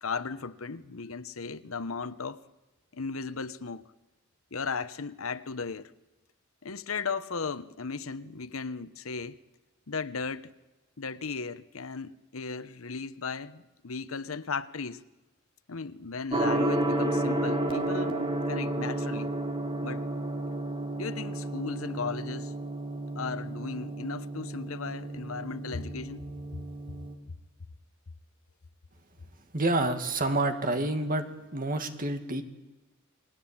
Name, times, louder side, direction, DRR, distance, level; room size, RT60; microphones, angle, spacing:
voice 1, 0.0-2.4 2.9-3.9 4.5-5.9 6.6-9.4 9.9-10.5 11.0-15.0 15.7-18.2 18.4-19.3 19.8-20.1 21.0-22.5 23.2-26.3 26.5-26.6, left 4 dB, 90° left, 1.0 m, -36 dB
Gong, 16.3-27.1, right 1 dB, 25° right, 2.9 m, -32 dB
voice 2, 29.5-31.3 31.5-32.4, right 2 dB, 40° right, 2.1 m, -28 dB
29.0 x 20.5 x 8.8 m
head